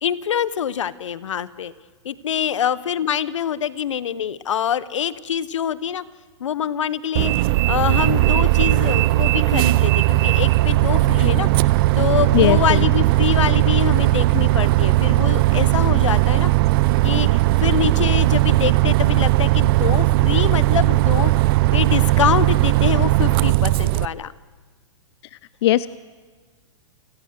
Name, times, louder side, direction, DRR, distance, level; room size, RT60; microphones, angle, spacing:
voice 1, 0.0-1.7 2.0-6.0 6.4-16.5 17.0-24.3, left 9 dB, 80° left, 18 dB, 0.9 m, -25 dB
Bus, 7.2-24.1, right 18 dB, 50° right, 0.6 m, -17 dB
voice 2, 12.3-12.8 25.6-25.9, left 14 dB, 60° left, 17 dB, 0.6 m, -17 dB
29.5 x 17.0 x 6.5 m, 1.4 s
hypercardioid pair, 120°, 16 cm